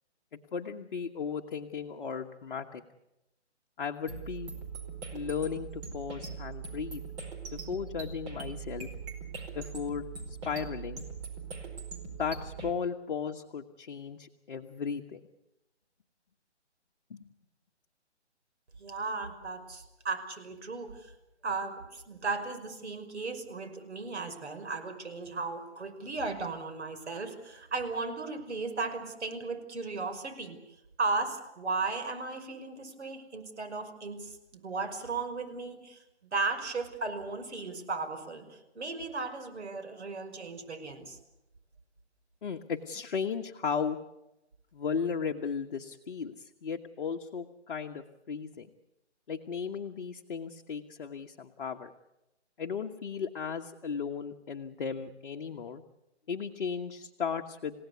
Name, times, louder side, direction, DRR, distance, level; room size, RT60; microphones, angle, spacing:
voice 1, 0.5-2.8 3.8-4.5 5.1-7.0 7.5-8.9 9.5-11.0 12.2-15.2 17.1-17.3 42.4-44.0 44.7-48.7 49.3-51.9 52.6-55.8 56.3-57.7, left 6 dB, 50° left, 2 dB, 1.3 m, -35 dB
sound 1, 4.1-12.7, right 5 dB, 25° right, 4.7 m, -41 dB
voice 2, 18.8-21.1 21.4-30.6 31.0-36.0 36.3-41.2, right 3 dB, 75° right, 6 dB, 5.5 m, -36 dB
29.0 x 17.0 x 8.3 m, 0.93 s
hypercardioid pair, 160°, 35 cm